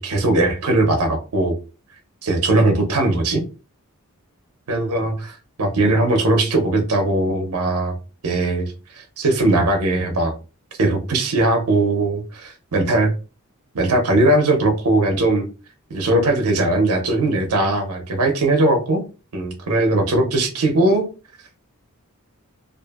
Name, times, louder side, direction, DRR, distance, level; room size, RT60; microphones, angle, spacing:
voice 1, 0.0-1.6 2.2-3.4 4.7-8.0 8.2-10.3 10.8-13.1 13.7-15.5 15.9-19.0 19.3-21.1, right 2 dB, 85° right, 0.7 m, -19 dB
2.6 x 2.5 x 2.3 m
head